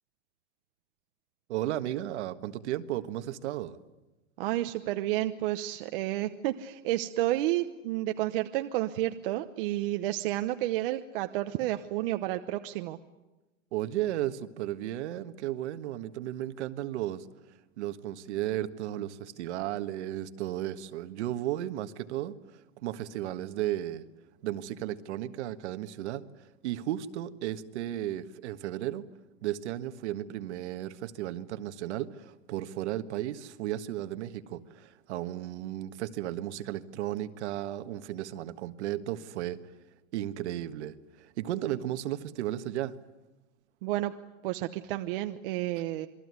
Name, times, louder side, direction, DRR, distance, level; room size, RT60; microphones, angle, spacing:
voice 1, 1.5-3.8 13.7-17.3 17.8-24.1 24.4-29.1 29.4-39.6 40.1-42.9, right 13 dB, 60° right, 11 dB, 1.6 m, -34 dB
voice 2, 4.4-13.0 43.8-44.1 44.4-46.1, right 15 dB, 45° right, 8 dB, 1.0 m, -31 dB
27.5 x 22.0 x 9.7 m, 1.1 s
supercardioid pair, 165°, 39 cm